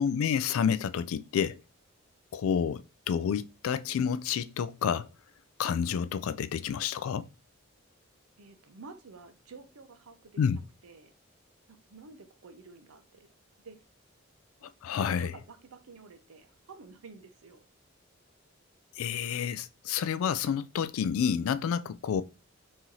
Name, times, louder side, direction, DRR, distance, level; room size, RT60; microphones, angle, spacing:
voice 1, 0.0-1.6 2.3-5.1 5.6-7.3 10.4-10.6 14.6-15.3 19.0-22.2, left 7 dB, 80° left, 0.3 m, -29 dB
voice 2, 8.4-11.1 11.7-13.3 13.6-13.8 14.9-17.7, right 4 dB, 85° right, 0.6 m, -51 dB
3.0 x 2.7 x 3.8 m
head